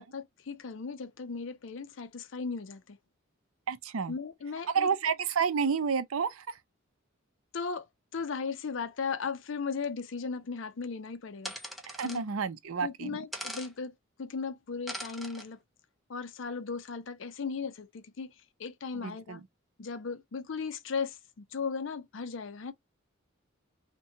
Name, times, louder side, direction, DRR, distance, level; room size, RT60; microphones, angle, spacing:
voice 1, 0.0-3.0 4.1-4.9 7.5-7.9 8.1-11.5 12.0-12.2 12.8-15.6 16.1-19.4 19.8-22.7, left 5 dB, 60° left, 0.5 m, -37 dB
voice 2, 3.7-4.1 4.7-6.6 11.9-13.2 18.9-19.4, right 6 dB, 80° right, 0.5 m, -30 dB
sound 1, 11.4-12.2 13.3-13.7 14.9-15.4, equal, ahead, 0.5 m, -40 dB
2.7 x 2.2 x 2.6 m
head